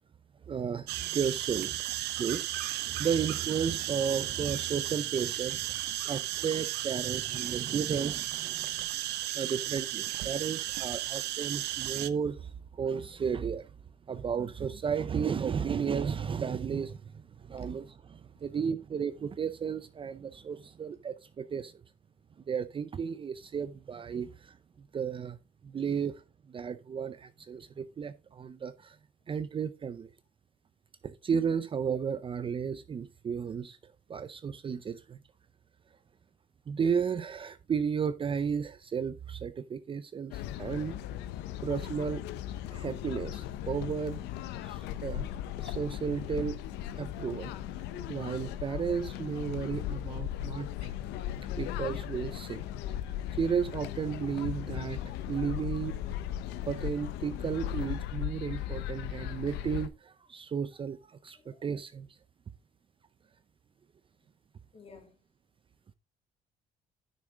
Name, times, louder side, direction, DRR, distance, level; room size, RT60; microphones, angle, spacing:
voice 1, 0.5-1.9 2.2-5.8 6.1-8.9 9.3-13.7 14.1-21.7 22.5-24.6 24.9-25.4 25.6-26.2 26.5-29.0 29.3-30.1 31.0-35.2 36.7-41.0 41.6-42.2 42.7-44.2 44.6-45.3 45.6-46.6 47.0-47.5 48.1-50.9 51.6-52.6 53.4-56.0 56.7-62.1, right 7 dB, 30° right, 0.5 m, -33 dB
sound 1, 0.9-12.1, right 15 dB, 80° right, 0.7 m, -34 dB
sound 2, 40.3-59.9, left 11 dB, 90° left, 0.7 m, -37 dB
voice 2, 61.3-61.7 64.2-64.3 64.7-65.2, left 5 dB, 35° left, 2.7 m, -55 dB
9.3 x 6.4 x 3.6 m
cardioid pair, 110°, 17 cm